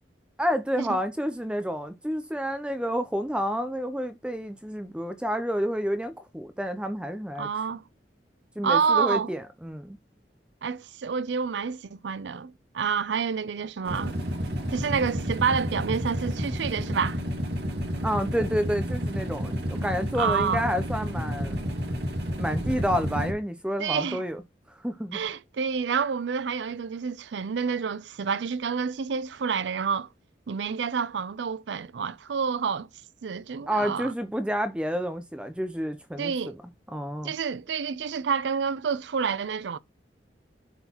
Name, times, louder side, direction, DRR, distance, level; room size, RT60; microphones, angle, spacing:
voice 1, 0.4-7.5 8.6-10.0 18.0-21.7 22.4-24.4 24.8-25.2 33.7-36.5 36.9-37.3, equal, 5° right, 0.5 m, -29 dB
voice 2, 7.4-7.8 8.6-9.3 10.6-14.1 14.7-17.2 20.2-20.6 23.8-24.2 25.1-30.1 30.5-32.9 33.2-34.1 36.2-36.6 37.2-39.8, right 6 dB, 85° right, 0.5 m, -28 dB
sound 1, 13.9-23.3, equal, 65° right, 1.7 m, -30 dB
11.0 x 3.9 x 2.9 m
head